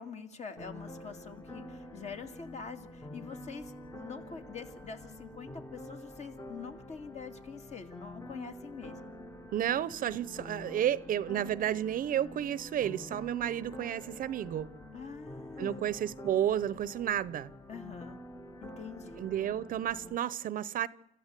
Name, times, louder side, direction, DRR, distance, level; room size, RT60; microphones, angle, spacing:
voice 1, 0.0-9.1 14.9-16.0 17.7-18.2 18.6-19.2, left 5 dB, 40° left, 2.5 m, -45 dB
sound 1, 0.6-20.2, left 1 dB, 15° left, 1.3 m, -47 dB
voice 2, 9.5-14.7 15.6-17.5 19.2-20.9, right 11 dB, 55° right, 0.8 m, -31 dB
29.0 x 14.0 x 8.2 m
cardioid pair, 110°, 17 cm